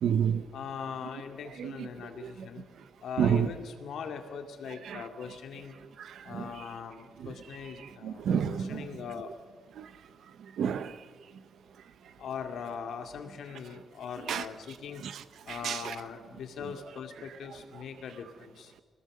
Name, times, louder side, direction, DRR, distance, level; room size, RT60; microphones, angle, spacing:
voice 1, 0.0-0.4 1.6-1.9 2.2-2.3 3.2-3.5 4.9-5.0 6.0-6.4 7.2-7.3 8.0-8.9 9.8-9.9 10.6-11.0 14.3-14.4 15.0-15.2 15.5-15.9, right 8 dB, 80° right, 1.0 m, -29 dB
voice 2, 0.5-2.6 3.0-5.7 6.2-9.3 12.2-15.0 15.5-18.7, left 6 dB, 85° left, 2.3 m, -41 dB
26.5 x 19.0 x 6.6 m
wide cardioid pair, 155°, 0 cm